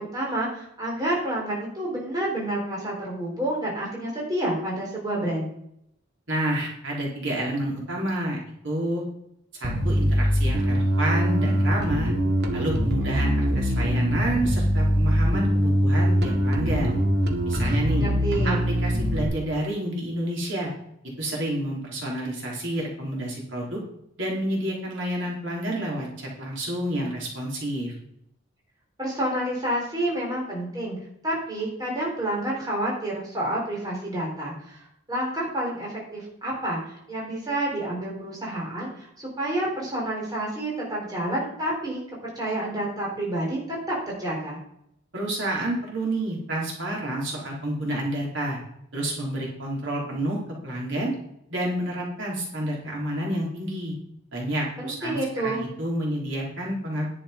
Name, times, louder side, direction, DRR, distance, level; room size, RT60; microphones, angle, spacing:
voice 1, 0.0-5.5 17.9-18.7 29.0-31.0 31.2-42.0 42.4-44.6 54.8-55.6, right 1 dB, 20° right, -3 dB, 3.9 m, -29 dB
voice 2, 6.3-8.4 8.6-9.0 9.5-12.1 12.5-16.9 17.4-18.1 18.4-20.7 21.2-23.8 24.2-27.9 45.1-48.6 48.9-50.4 50.6-51.1 51.5-54.0 54.3-57.1, right 1 dB, 70° right, -3 dB, 3.8 m, -29 dB
Bass guitar, 9.6-19.2, equal, 55° right, 1.4 m, -23 dB
10.5 x 7.7 x 5.1 m, 0.75 s
head